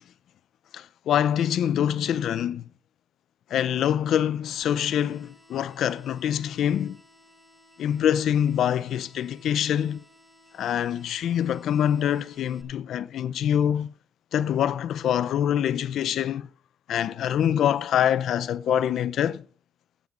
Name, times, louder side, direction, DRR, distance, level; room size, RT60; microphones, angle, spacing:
voice 1, 0.7-2.6 3.5-7.0 7.8-10.0 10.5-13.9 14.3-16.5 16.9-19.4, left 10 dB, 75° left, 0.6 m, -25 dB
sound 1, 4.6-12.6, equal, ahead, 3.6 m, -57 dB
16.0 x 8.9 x 3.9 m
cardioid pair, 90°, 0 cm